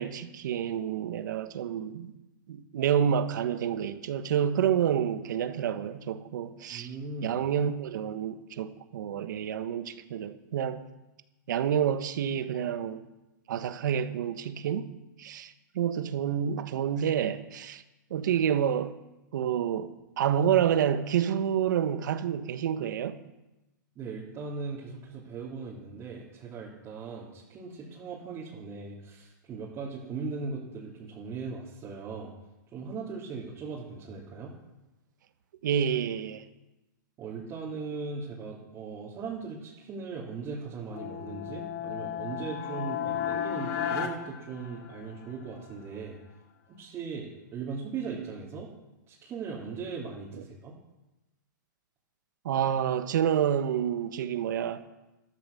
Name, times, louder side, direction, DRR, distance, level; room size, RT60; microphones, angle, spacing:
voice 1, 0.0-2.1 2.5-6.9 7.2-10.9 11.5-13.0 13.5-14.9 15.2-17.8 18.1-18.9 19.3-23.2 35.6-36.4 52.4-54.9, right 9 dB, 65° right, 1.3 m, -28 dB
voice 2, 6.7-7.4 23.9-32.3 32.7-34.5 37.2-46.2 46.8-48.7 49.1-50.7, right 4 dB, 25° right, 3.0 m, -38 dB
sound 1, 40.9-45.3, left 9 dB, 45° left, 2.0 m, -34 dB
13.5 x 13.5 x 7.0 m
hypercardioid pair, 140°, 11 cm